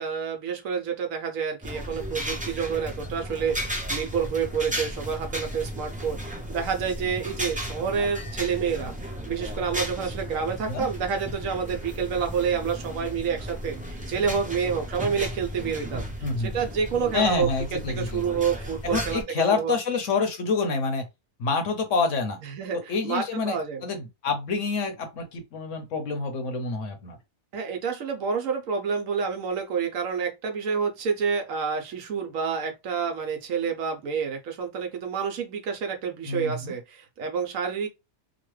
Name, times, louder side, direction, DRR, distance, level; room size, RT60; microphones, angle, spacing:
voice 1, 0.0-17.5 17.9-19.8 22.4-23.9 27.5-37.9, right 6 dB, 70° right, 1.0 m, -28 dB
sound 1, 1.6-19.2, equal, 10° right, 0.4 m, -35 dB
voice 2, 16.2-16.5 17.1-18.2 18.8-21.1 21.4-22.4 22.7-27.2 36.3-36.7, left 4 dB, 65° left, 1.0 m, -27 dB
3.0 x 2.2 x 3.1 m
omnidirectional pair, 1.5 m